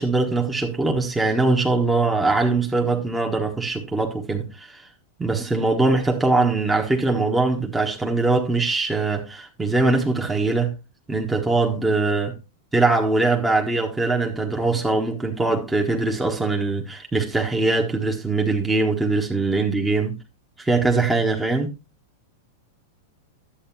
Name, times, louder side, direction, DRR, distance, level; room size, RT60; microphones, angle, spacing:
voice 1, 0.0-4.8 5.2-10.7 11.1-12.3 12.7-20.2 20.6-21.7, right 3 dB, 10° right, 1.3 m, -22 dB
11.5 x 7.9 x 2.8 m
hypercardioid pair, 105°, 0 cm